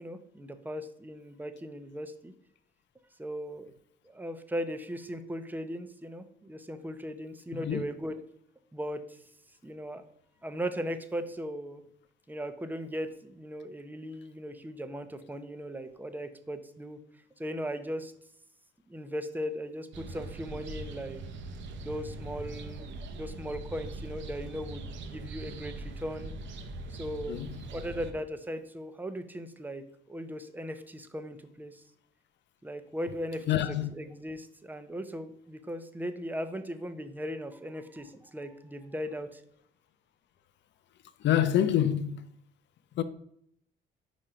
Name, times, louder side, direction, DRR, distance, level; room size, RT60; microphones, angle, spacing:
voice 1, 0.0-2.3 3.2-3.7 4.0-8.2 8.7-9.2 9.6-10.0 10.4-11.8 12.3-17.0 17.4-18.1 18.9-21.2 21.8-22.8 23.1-26.3 26.9-27.4 27.7-31.8 32.6-39.4, equal, 10° right, 0.7 m, -38 dB
sound 1, 19.9-28.1, right 2 dB, 70° right, 0.8 m, -41 dB
voice 2, 33.5-33.9 41.2-42.2 43.0-43.1, left 10 dB, 65° left, 0.6 m, -26 dB
5.1 x 4.3 x 4.9 m
cardioid pair, 90°, 20 cm